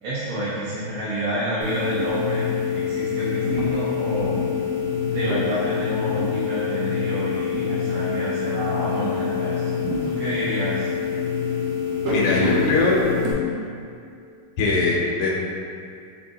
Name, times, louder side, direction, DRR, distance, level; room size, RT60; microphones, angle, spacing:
voice 1, 0.0-2.5 2.7-4.5 5.0-10.9, right 1 dB, 85° right, -10 dB, 1.7 m, -29 dB
sound 1, 1.6-13.3, left 5 dB, 65° right, 1.2 m, -25 dB
voice 2, 12.1-13.0 14.6-15.4, left 3 dB, 85° left, -3 dB, 1.6 m, -21 dB
4.3 x 2.7 x 3.7 m, 2.4 s
omnidirectional pair, 2.4 m